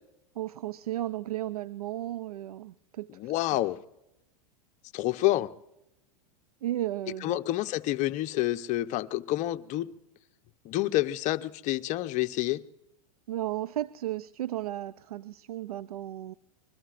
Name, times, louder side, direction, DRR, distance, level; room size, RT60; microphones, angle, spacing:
voice 1, 0.4-3.3 6.6-7.4 13.3-16.3, right 14 dB, 90° right, 17 dB, 0.5 m, -34 dB
voice 2, 3.1-3.8 4.9-5.5 7.2-9.9 10.6-12.6, left 16 dB, 40° left, 10 dB, 0.8 m, -28 dB
25.5 x 21.5 x 2.5 m, 0.88 s
hypercardioid pair, 115°, 19 cm